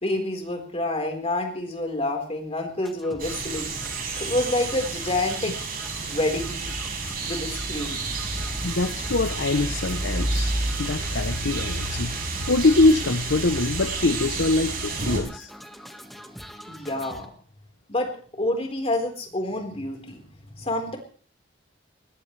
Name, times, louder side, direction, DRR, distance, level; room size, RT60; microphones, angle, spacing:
voice 1, 0.0-3.7 4.2-5.5 6.0-6.8 7.2-8.1 16.7-17.3 17.9-18.1 18.4-20.3 20.6-21.0, left 2 dB, 35° left, 2 dB, 4.3 m, -28 dB
sound 1, 2.8-17.3, equal, ahead, 1.6 m, -44 dB
sound 2, 3.2-15.2, right 3 dB, 50° right, 5.4 m, -30 dB
voice 2, 8.6-10.5 10.8-12.2 12.5-15.5, left 2 dB, 75° left, 11 dB, 0.8 m, -23 dB
20.0 x 19.5 x 3.3 m, 0.43 s
head